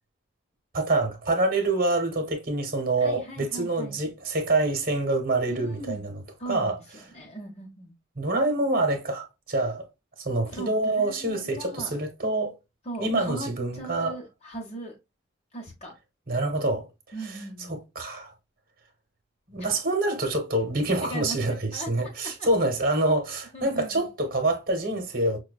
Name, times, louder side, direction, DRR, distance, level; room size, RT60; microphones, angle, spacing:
voice 1, 0.7-6.8 8.2-9.8 10.2-12.5 13.0-14.1 16.3-16.9 17.2-17.4 17.7-18.3 19.5-25.4, right 2 dB, 50° right, 1.0 m, -26 dB
voice 2, 3.0-4.0 5.5-6.1 6.4-6.8 7.1-7.9 10.5-11.9 12.8-15.0 15.5-15.9 17.1-17.8 21.0-22.1 22.4-22.5 23.5-24.1, right 2 dB, 35° left, 0.9 m, -39 dB
5.6 x 2.3 x 2.2 m
head